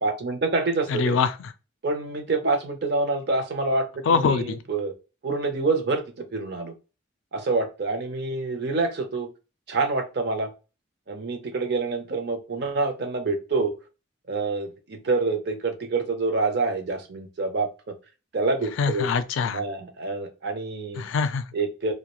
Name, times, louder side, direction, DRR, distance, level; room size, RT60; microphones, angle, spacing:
voice 1, 0.0-1.2 1.8-4.9 5.2-6.0 6.3-6.7 7.3-9.3 9.7-10.5 11.1-13.8 14.3-17.7 18.3-19.1 19.5-21.1 21.5-21.9, right 3 dB, 55° right, 0.5 m, -26 dB
voice 2, 0.9-1.5 4.1-4.6 18.8-19.6 21.0-21.5, left 5 dB, 70° left, 0.3 m, -24 dB
2.3 x 2.1 x 2.9 m
head